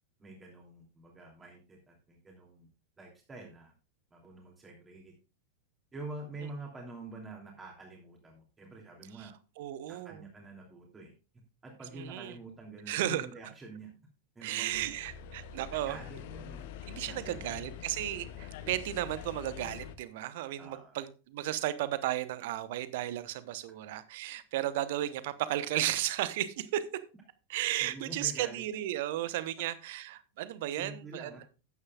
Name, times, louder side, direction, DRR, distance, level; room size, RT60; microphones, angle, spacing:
voice 1, 0.2-2.7 3.0-3.7 4.1-5.1 5.9-9.3 9.9-11.1 11.6-13.9 14.3-15.2 15.7-16.6 17.1-17.7 20.6-21.0 27.8-28.6 30.7-31.4, right 2 dB, 15° right, 0 dB, 2.9 m, -47 dB
voice 2, 9.6-10.2 11.9-12.4 12.9-13.3 14.4-16.0 16.9-26.8 27.5-31.3, right 13 dB, 50° right, 15 dB, 0.9 m, -34 dB
sound 1, 14.7-20.0, left 10 dB, 50° left, 1.0 m, -45 dB
13.5 x 9.7 x 2.4 m, 0.32 s
figure-of-eight pair, 90°, 0 cm